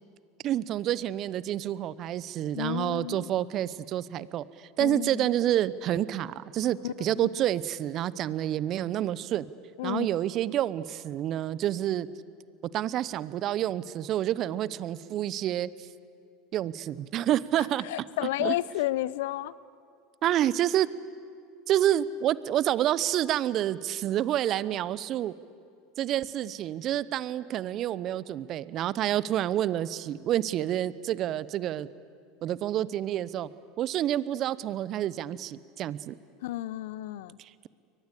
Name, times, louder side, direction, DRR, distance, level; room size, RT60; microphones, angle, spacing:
voice 1, 0.4-9.4 9.8-12.1 12.7-15.7 16.5-17.9 18.2-18.5 20.2-20.9 21.7-25.3 26.0-31.9 32.4-33.5 33.8-36.2 37.4-37.7, right 12 dB, 50° right, 18 dB, 0.9 m, -28 dB
voice 2, 2.5-3.3 4.8-5.3 6.8-7.3 9.8-10.1 17.9-19.5 36.4-37.4, left 15 dB, 70° left, 20 dB, 0.7 m, -32 dB
30.0 x 23.0 x 8.5 m, 2.3 s
hypercardioid pair, 85°, 0 cm